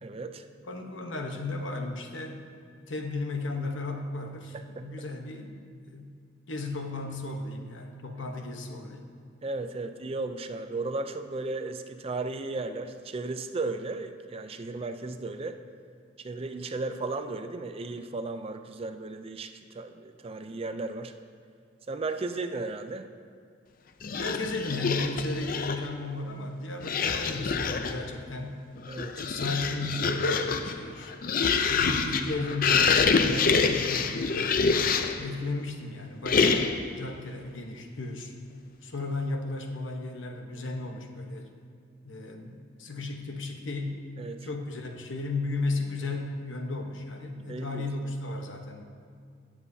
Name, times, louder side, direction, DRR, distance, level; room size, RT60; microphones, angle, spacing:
voice 1, 0.0-0.4 4.5-4.9 9.4-15.6 16.2-21.1 21.9-23.1 28.9-29.3 44.2-44.5 47.5-47.9, right 3 dB, 30° right, 8 dB, 0.4 m, -35 dB
voice 2, 0.6-2.5 2.9-6.1 6.5-9.1 24.1-28.6 29.2-31.1 31.7-34.6 35.2-38.3 38.8-41.5 42.0-44.0 44.4-48.8, left 2 dB, 75° left, 4 dB, 1.0 m, -35 dB
sound 1, 24.0-25.9 26.8-28.0 28.8-35.3 36.2-36.9, left 5 dB, 45° left, 0.5 m, -26 dB
18.0 x 7.3 x 2.7 m, 2.3 s
head